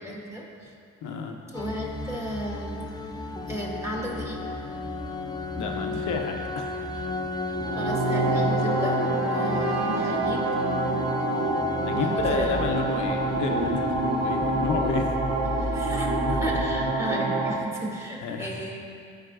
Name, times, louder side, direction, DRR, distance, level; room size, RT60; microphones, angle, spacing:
voice 1, 0.0-0.7 1.5-4.4 7.7-10.4 11.9-12.6 15.6-18.8, equal, 10° right, -3 dB, 1.6 m, -34 dB
voice 2, 1.0-1.4 5.6-7.0 11.3-15.1 15.6-15.8 16.2-16.4 18.2-18.5, left 4 dB, 80° left, 3 dB, 0.8 m, -31 dB
sound 1, 1.5-16.7, left 3 dB, 15° left, 0.3 m, -33 dB
sound 2, 7.5-17.5, right 2 dB, 85° right, 1.0 m, -27 dB
sound 3, 7.8-11.8, right 5 dB, 55° right, 1.0 m, -36 dB
13.0 x 5.1 x 2.6 m, 2.4 s
cardioid pair, 90°, 30 cm